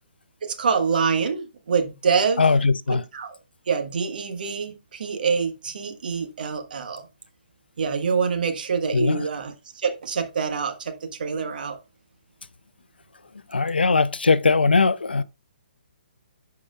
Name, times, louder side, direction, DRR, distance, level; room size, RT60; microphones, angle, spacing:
voice 1, 0.4-2.4 3.1-3.4 3.7-7.0 7.8-11.8, right 5 dB, 60° right, 1.5 m, -26 dB
voice 2, 2.4-3.0 8.9-9.3 13.5-15.2, left 4 dB, 80° left, 0.5 m, -20 dB
12.5 x 4.8 x 2.4 m
figure-of-eight pair, 130°, 5 cm